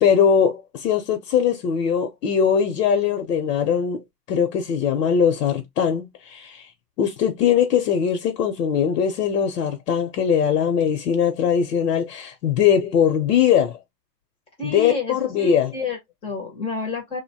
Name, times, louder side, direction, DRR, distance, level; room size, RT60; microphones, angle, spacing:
voice 1, 0.0-4.0 4.3-6.7 7.0-13.8 14.6-15.7, left 7 dB, 75° left, 0.8 m, -21 dB
voice 2, 14.6-17.2, left 5 dB, 10° left, 0.5 m, -30 dB
2.7 x 2.2 x 2.7 m
hypercardioid pair, 140°, 48 cm